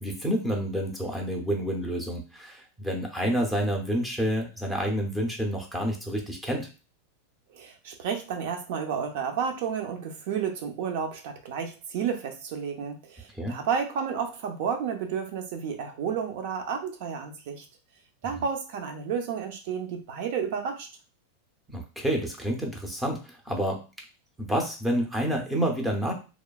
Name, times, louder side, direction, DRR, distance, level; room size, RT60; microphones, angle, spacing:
voice 1, 0.0-6.7 13.3-13.6 21.7-23.8 24.4-26.1, equal, 5° right, 1 dB, 0.6 m, -29 dB
voice 2, 7.5-17.6 18.2-20.9, right 7 dB, 55° right, 5 dB, 0.6 m, -31 dB
3.0 x 2.1 x 2.3 m, 0.33 s
supercardioid pair, 155°, 0 cm